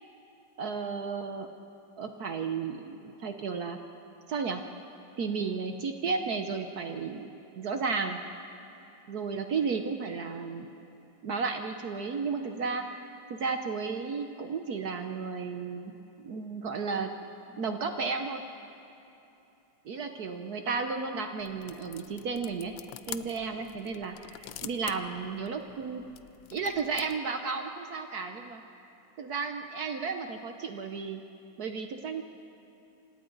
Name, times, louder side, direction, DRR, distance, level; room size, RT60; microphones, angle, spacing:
voice 1, 0.6-1.5 2.0-3.8 4.3-4.6 5.2-8.2 9.1-10.7 11.2-17.1 17.5-18.4 19.8-22.7 23.1-26.0 26.5-28.6 29.2-31.2 31.6-32.2, right 5 dB, 60° right, 5 dB, 1.3 m, -33 dB
sound 1, 21.4-27.2, left 12 dB, 80° left, 1.4 m, -47 dB
27.5 x 26.0 x 4.0 m, 2.9 s
omnidirectional pair, 2.0 m